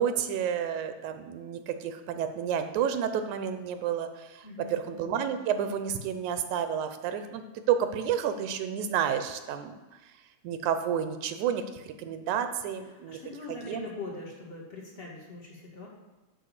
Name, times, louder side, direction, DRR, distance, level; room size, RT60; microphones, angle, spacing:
voice 1, 0.0-7.4 7.7-9.8 10.4-13.2 13.5-13.9, right 8 dB, 85° right, 8 dB, 2.2 m, -30 dB
voice 2, 4.4-4.8 13.1-15.9, left 2 dB, 25° left, -2 dB, 1.6 m, -41 dB
12.0 x 4.4 x 6.6 m, 1.1 s
omnidirectional pair, 3.3 m